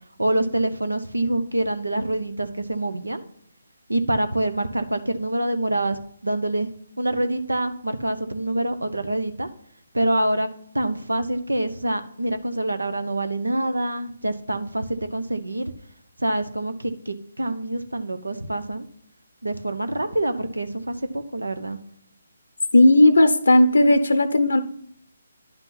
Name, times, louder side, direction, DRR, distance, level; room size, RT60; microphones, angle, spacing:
voice 1, 0.2-3.2 3.9-6.7 7.0-9.5 9.9-10.5 10.7-15.7 16.2-18.9 19.4-21.8, right 1 dB, 90° right, 10 dB, 1.0 m, -26 dB
voice 2, 22.7-24.6, left 1 dB, 75° left, 11 dB, 0.7 m, -15 dB
10.5 x 5.8 x 4.1 m, 0.67 s
figure-of-eight pair, 145°, 0 cm